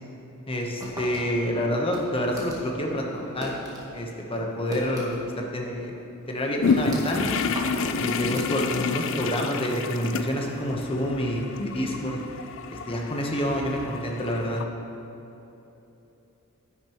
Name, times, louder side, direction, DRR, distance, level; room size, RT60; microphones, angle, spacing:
voice 1, 0.5-3.5 3.9-5.9 6.3-7.3 8.0-12.2 12.7-14.6, equal, 25° left, 0 dB, 1.0 m, -28 dB
sound 1, 0.8-3.9 4.2-5.4 5.7-5.8 6.3-9.1, equal, 15° right, 1.5 m, -39 dB
sound 2, 6.6-14.6, left 5 dB, 65° left, 0.4 m, -29 dB
10.0 x 9.7 x 3.0 m, 3.0 s
head